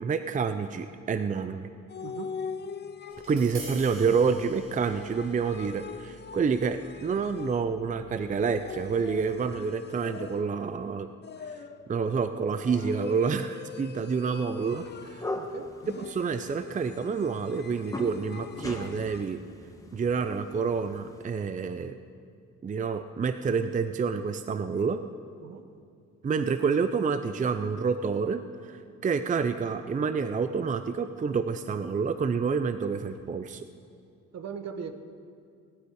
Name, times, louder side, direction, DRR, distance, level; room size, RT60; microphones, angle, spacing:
voice 1, 0.0-1.7 3.3-11.1 11.9-15.2 16.0-19.4 19.9-22.0 22.6-25.0 26.2-33.6, right 5 dB, 25° right, 10 dB, 0.5 m, -28 dB
sound 1, 1.9-3.6 4.8-7.9 8.4-10.7 11.2-11.9 12.6-15.4 15.8-19.4, left 6 dB, 35° left, 0.7 m, -43 dB
voice 2, 2.0-2.4 13.9-14.2 15.4-15.7 25.4-25.6 34.3-34.9, right 6 dB, 60° right, 9 dB, 1.1 m, -40 dB
Tap, 3.1-9.2, right 1 dB, 80° right, 3.6 m, -49 dB
sound 2, 14.7-21.3, left 1 dB, 10° left, 1.4 m, -41 dB
18.0 x 11.5 x 4.8 m, 2.3 s
cardioid pair, 90°, 30 cm